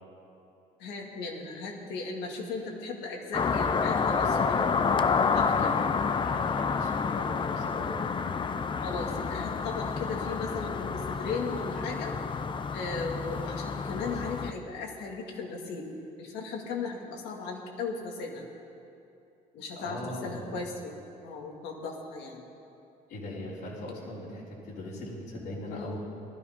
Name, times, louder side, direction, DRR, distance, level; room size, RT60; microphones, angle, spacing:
voice 1, 0.8-4.7 5.3-5.7 8.8-12.2 12.7-15.9 16.2-18.5 19.5-20.9 21.2-22.4 25.7-26.0, left 4 dB, 90° left, 0 dB, 2.4 m, -36 dB
sound 1, 3.3-14.5, left 5 dB, 30° left, 0.6 m, -29 dB
voice 2, 6.2-8.0 19.7-20.6 23.1-26.0, left 1 dB, 75° left, -7 dB, 3.8 m, -40 dB
18.5 x 12.0 x 5.3 m, 2.7 s
cardioid pair, 110°, 17 cm